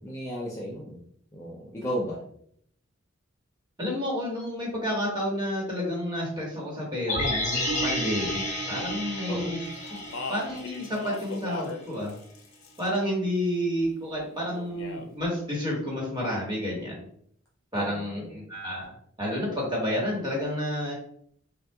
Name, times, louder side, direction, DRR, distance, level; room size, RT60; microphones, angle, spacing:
voice 1, 0.0-1.0 1.3-2.2 9.3-9.5 17.7-18.4, equal, 15° left, -5 dB, 0.6 m, -34 dB
voice 2, 3.8-8.4 8.7-9.6 10.1-12.1 12.8-17.0 17.7-20.9, equal, 20° right, -3 dB, 1.4 m, -30 dB
sound 1, 7.1-11.3 11.6-11.7, left 1 dB, 40° left, 1.0 m, -31 dB
Speech, 9.9-11.8 12.1-13.0 14.4-15.1, left 3 dB, 90° left, 0.6 m, -37 dB
5.6 x 2.5 x 2.3 m, 0.64 s
head